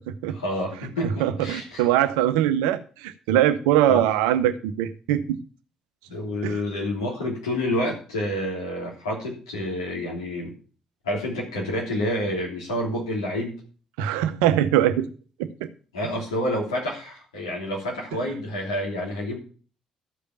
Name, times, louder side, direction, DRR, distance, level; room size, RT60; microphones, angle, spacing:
voice 1, 0.3-1.8 3.9-4.1 6.1-10.5 11.0-13.6 15.9-19.4, left 1 dB, 85° left, -3 dB, 3.1 m, -28 dB
voice 2, 1.2-5.4 6.4-6.6 14.0-15.1 15.4-15.7, right 12 dB, 75° right, 11 dB, 0.7 m, -22 dB
13.5 x 5.1 x 5.6 m, 0.40 s
hypercardioid pair, 45°, 3 cm